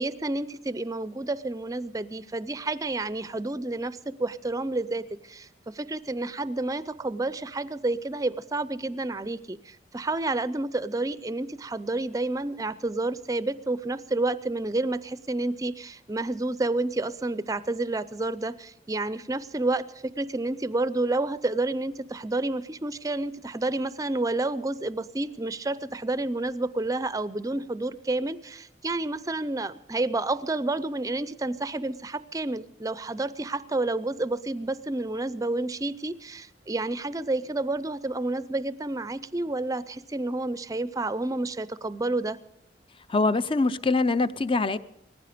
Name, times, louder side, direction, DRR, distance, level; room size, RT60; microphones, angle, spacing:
voice 1, 0.0-42.4, right 2 dB, 20° right, 16 dB, 0.5 m, -30 dB
voice 2, 43.1-44.8, left 3 dB, 30° left, 14 dB, 0.5 m, -24 dB
19.0 x 15.0 x 5.1 m, 0.79 s
head